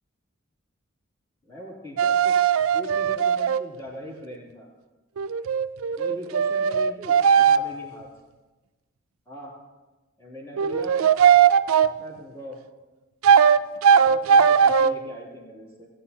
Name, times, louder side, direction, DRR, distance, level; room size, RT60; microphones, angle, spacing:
voice 1, 1.4-2.3 2.7-4.7 6.0-8.1 9.3-9.5 10.2-11.0 12.0-12.6 13.8-15.9, left 1 dB, 15° left, -5 dB, 2.7 m, -40 dB
sound 1, 2.0-3.6 5.2-7.6 10.6-11.9 13.2-14.9, right 7 dB, 85° right, 0.4 m, -18 dB
18.0 x 8.9 x 2.8 m, 1.2 s
head